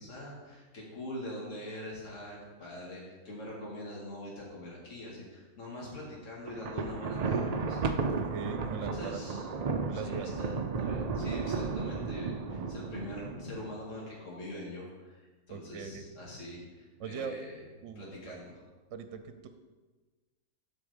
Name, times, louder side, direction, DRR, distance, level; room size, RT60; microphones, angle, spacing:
voice 1, 0.0-8.0 8.8-9.5 9.9-17.6 18.0-18.6, left 1 dB, 60° left, -4 dB, 2.4 m, -43 dB
Thunder, 6.5-13.7, right 4 dB, 80° right, 0.3 m, -33 dB
voice 2, 8.1-9.2 9.9-10.3 15.5-16.0 17.0-17.5 17.8-18.4 18.9-19.5, right 7 dB, 65° right, 8 dB, 1.0 m, -40 dB
12.5 x 4.5 x 5.0 m, 1.3 s
omnidirectional pair, 1.5 m